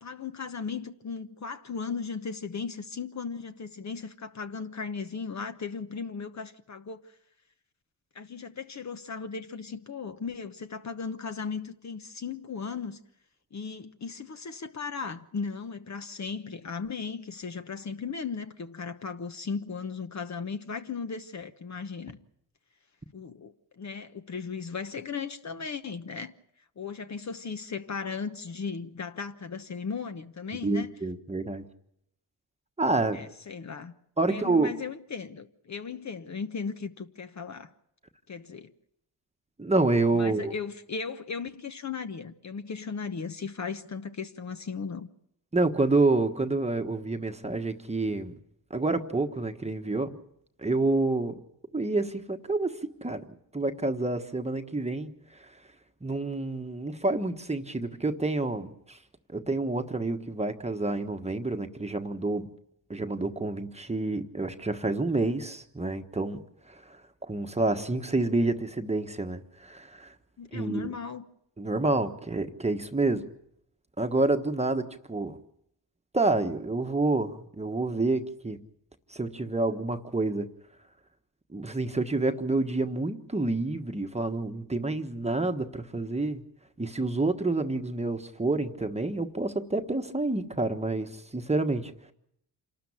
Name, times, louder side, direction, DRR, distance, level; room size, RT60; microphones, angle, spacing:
voice 1, 0.0-7.0 8.1-13.0 13.5-22.2 23.1-26.3 26.8-30.9 33.1-33.9 34.3-37.7 38.3-38.7 40.1-45.1 70.4-71.3, left 5 dB, 40° left, 1.1 m, -36 dB
voice 2, 30.6-31.6 32.8-33.3 34.2-34.7 39.6-40.5 45.5-48.3 48.7-50.2 50.6-51.4 51.7-53.2 53.5-55.1 55.4-55.5 56.0-59.0 59.3-62.5 62.9-66.4 66.7-70.1 70.5-70.9 71.6-73.2 74.0-75.4 76.1-78.6 79.1-80.5 81.5-86.4 86.8-92.1, right 2 dB, 15° right, 1.3 m, -28 dB
27.0 x 13.0 x 8.6 m
cardioid pair, 90°, 44 cm